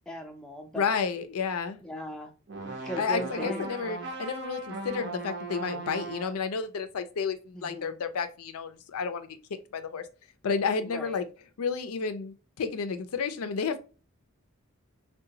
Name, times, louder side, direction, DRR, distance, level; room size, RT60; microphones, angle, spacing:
voice 1, 0.1-0.9 1.8-2.3 2.9-3.7 7.5-7.9 10.8-11.2, equal, 5° left, 0.4 m, -38 dB
voice 2, 0.8-1.8 3.0-9.3 9.7-10.1 10.4-11.2 11.6-13.8, left 5 dB, 80° left, 0.4 m, -31 dB
sound 1, 2.5-6.5, right 3 dB, 50° right, 0.6 m, -38 dB
3.7 x 2.2 x 2.7 m
head